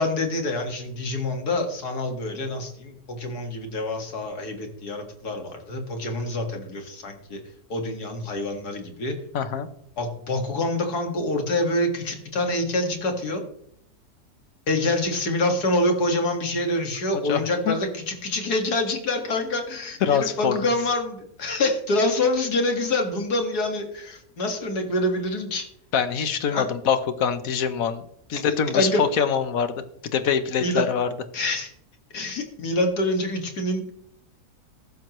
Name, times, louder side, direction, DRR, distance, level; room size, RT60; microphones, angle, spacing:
voice 1, 0.0-7.4 7.7-9.2 10.0-13.4 14.7-25.7 26.5-26.7 28.7-29.0 30.6-30.9 31.3-31.7 32.1-33.9, left 2 dB, 85° left, 4 dB, 2.5 m, -26 dB
voice 2, 9.3-9.7 17.2-17.8 20.0-20.5 25.9-28.0 28.3-29.7 30.1-31.1, left 7 dB, 65° left, 11 dB, 1.4 m, -24 dB
14.5 x 12.5 x 3.1 m, 0.70 s
omnidirectional pair, 1.6 m